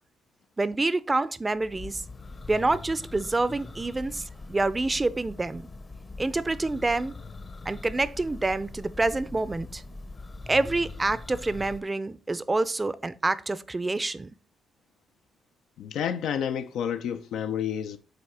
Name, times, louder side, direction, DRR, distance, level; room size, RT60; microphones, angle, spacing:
voice 1, 0.6-2.0 2.5-5.7 6.2-7.1 7.7-9.8 10.5-14.3, right 2 dB, 20° right, 0.5 m, -27 dB
Church bell, 1.5-11.8, left 3 dB, 30° left, 0.7 m, -42 dB
voice 2, 15.8-18.0, left 8 dB, 80° left, 0.5 m, -30 dB
7.8 x 2.8 x 5.6 m
cardioid pair, 90°, 0 cm